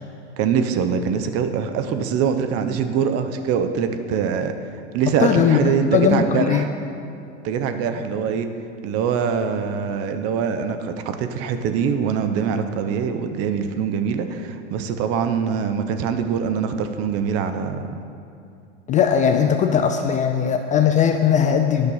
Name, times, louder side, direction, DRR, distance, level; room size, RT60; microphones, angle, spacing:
voice 1, 0.4-4.5 4.9-6.7 7.4-8.5 8.8-17.9, right 7 dB, 40° right, 8 dB, 0.8 m, -23 dB
voice 2, 5.2-5.6 5.9-6.7 18.9-21.9, left 7 dB, 20° left, 6 dB, 0.4 m, -19 dB
10.0 x 5.9 x 5.6 m, 2.5 s
hypercardioid pair, 105°, 35 cm